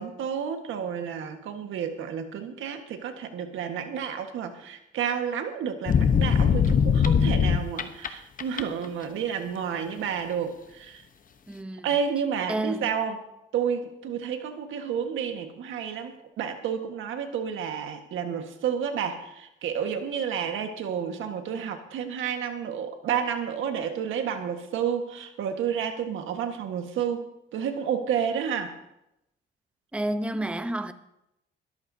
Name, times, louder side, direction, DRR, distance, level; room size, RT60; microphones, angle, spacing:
voice 1, 0.0-11.0 11.8-13.2 13.5-28.7, right 7 dB, 80° right, 1.5 m, -30 dB
sound 1, 5.9-8.1 8.4-8.8, left 7 dB, 45° left, 1.0 m, -21 dB
voice 2, 11.5-11.9 12.5-12.9 29.9-30.9, right 1 dB, 5° right, 0.8 m, -30 dB
21.0 x 14.0 x 2.8 m
cardioid pair, 90°, 20 cm